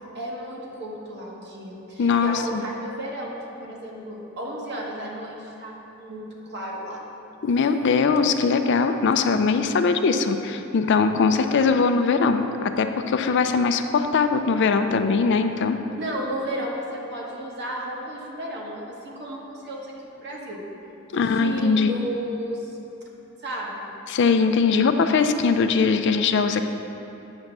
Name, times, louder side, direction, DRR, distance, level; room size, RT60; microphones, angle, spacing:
voice 1, 0.1-7.0 16.0-20.6 21.1-22.7 23.4-23.9, equal, 55° right, -3 dB, 1.3 m, -33 dB
voice 2, 2.0-2.6 7.4-15.8 21.1-21.9 24.1-26.6, left 5 dB, 55° left, 8 dB, 0.4 m, -21 dB
8.8 x 3.5 x 6.7 m, 2.9 s
head